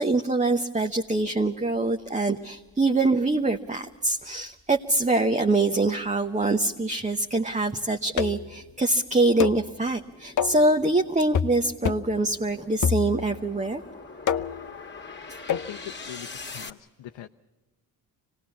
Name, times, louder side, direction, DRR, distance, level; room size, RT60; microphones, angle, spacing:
voice 1, 0.0-13.8, right 2 dB, 15° right, 5 dB, 1.0 m, -24 dB
sound 1, 2.6-16.7, left 3 dB, 25° left, 1.9 m, -45 dB
sound 2, 8.2-8.5 9.4-9.7 10.4-10.7 11.3-11.6 11.9-12.2 12.8-13.4 14.3-14.7 15.5-15.7, left 7 dB, 45° left, 0.8 m, -27 dB
voice 2, 15.5-17.3, left 12 dB, 75° left, 6 dB, 0.8 m, -41 dB
25.0 x 18.5 x 7.0 m, 1.2 s
supercardioid pair, 55°, 45 cm